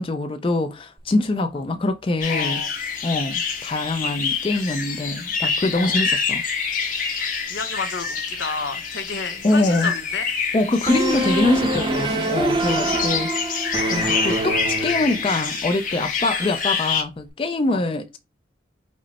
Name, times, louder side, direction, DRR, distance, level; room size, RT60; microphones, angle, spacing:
voice 1, 0.0-2.6 3.0-6.4 9.4-9.9 10.5-18.2, left 2 dB, 30° left, 0.4 m, -24 dB
sound 1, 2.2-17.0, left 5 dB, 45° left, 1.1 m, -27 dB
voice 2, 2.3-2.7 5.7-6.0 7.2-10.4 12.6-13.2 17.7-17.8, left 4 dB, 80° left, 0.9 m, -32 dB
sound 2, 10.9-15.5, right 2 dB, 25° right, 0.6 m, -25 dB
5.2 x 2.1 x 4.0 m
head